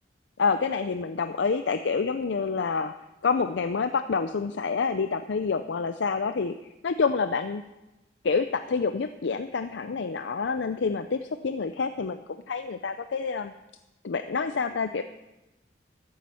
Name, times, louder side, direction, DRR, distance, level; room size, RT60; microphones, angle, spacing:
voice 1, 0.4-2.9 3.2-7.6 8.2-13.5 14.0-15.0, left 5 dB, 80° left, 10 dB, 0.5 m, -28 dB
14.0 x 9.6 x 5.7 m, 1.0 s
head